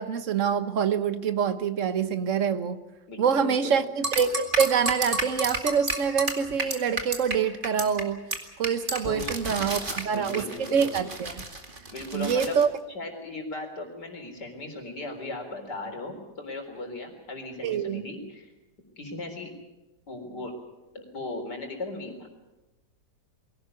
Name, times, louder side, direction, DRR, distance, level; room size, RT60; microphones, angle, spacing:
voice 1, 0.0-2.8 3.2-8.2 8.6-11.4 12.1-12.7 17.6-18.0, right 7 dB, 50° right, 11 dB, 1.3 m, -26 dB
voice 2, 3.1-3.8 9.1-9.3 9.8-10.8 11.9-12.6 12.9-18.5 19.0-19.5 20.1-20.5 20.9-22.3, left 2 dB, 65° left, 3 dB, 4.6 m, -37 dB
sound 1, 4.0-7.3 7.6-8.0 8.3-8.4 8.6-12.6, right 2 dB, 30° right, 2.5 m, -30 dB
23.0 x 17.5 x 8.4 m, 1.0 s
omnidirectional pair, 1.9 m